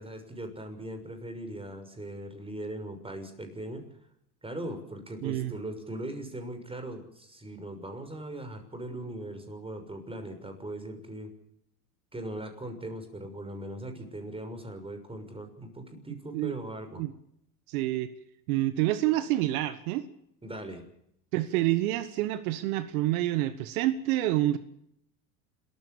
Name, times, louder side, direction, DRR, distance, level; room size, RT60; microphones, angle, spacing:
voice 1, 0.0-3.9 4.4-11.3 12.1-17.0 20.4-20.9, right 1 dB, 10° right, 7 dB, 6.4 m, -39 dB
voice 2, 5.2-5.5 16.3-16.5 17.0-17.1 17.7-18.1 18.5-20.0 21.3-24.6, right 15 dB, 70° right, 13 dB, 1.6 m, -27 dB
29.0 x 15.0 x 7.0 m, 0.74 s
hypercardioid pair, 90°, 44 cm